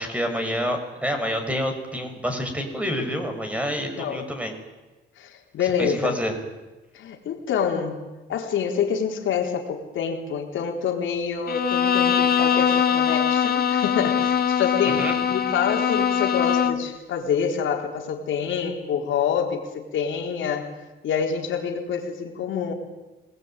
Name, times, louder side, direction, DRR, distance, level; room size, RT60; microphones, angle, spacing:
voice 1, 0.0-4.5 5.8-6.3 15.0-15.2, equal, 5° right, 5 dB, 6.3 m, -27 dB
voice 2, 5.2-6.2 6.9-15.0 15.3-20.7 21.0-22.7, left 7 dB, 75° left, 2 dB, 3.9 m, -27 dB
Bowed string instrument, 11.5-16.9, left 7 dB, 50° left, 1.9 m, -22 dB
26.5 x 20.0 x 9.2 m, 1.1 s
cardioid pair, 90°, 20 cm